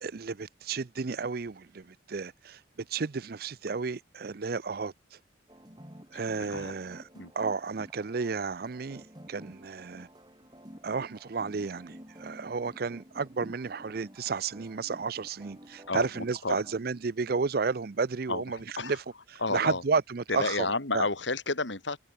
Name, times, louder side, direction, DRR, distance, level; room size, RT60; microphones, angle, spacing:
voice 1, 0.0-5.2 6.1-7.0 7.3-9.0 9.3-10.1 10.8-19.0 19.3-21.1, right 4 dB, 50° right, 0.5 m, -32 dB
sound 1, 5.5-16.9, equal, 20° right, 6.2 m, -51 dB
voice 2, 6.1-6.7 7.1-7.3 15.9-16.6 18.3-19.0 19.4-19.8 20.3-22.0, left 3 dB, 70° left, 3.0 m, -32 dB
head